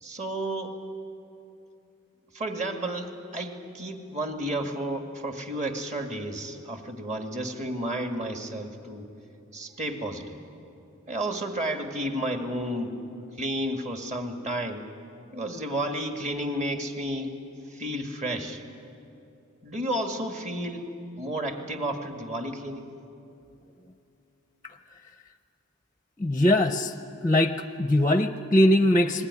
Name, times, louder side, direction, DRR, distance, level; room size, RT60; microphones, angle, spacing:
voice 1, 0.0-0.8 2.3-9.1 9.5-10.4 11.1-13.0 13.4-14.8 15.3-17.3 17.7-18.6 19.6-20.9 21.2-22.9, right 1 dB, 30° right, 4 dB, 2.0 m, -32 dB
voice 2, 26.2-26.9 27.2-29.3, left 1 dB, 15° left, 8 dB, 0.6 m, -21 dB
29.0 x 20.5 x 9.7 m, 2.8 s
head